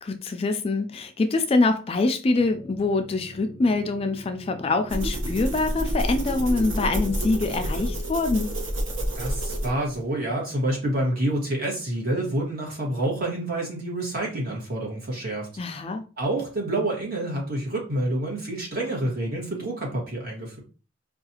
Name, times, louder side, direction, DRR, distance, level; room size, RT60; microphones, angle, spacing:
voice 1, 0.0-8.5 15.6-16.1, left 3 dB, 30° left, 0.3 m, -24 dB
sound 1, 2.4-7.9, equal, 25° right, 1.4 m, -44 dB
sound 2, 4.9-10.0, equal, 70° right, 1.0 m, -28 dB
voice 2, 9.1-15.5 16.2-20.6, right 1 dB, 50° right, 1.5 m, -28 dB
4.6 x 2.4 x 2.8 m
head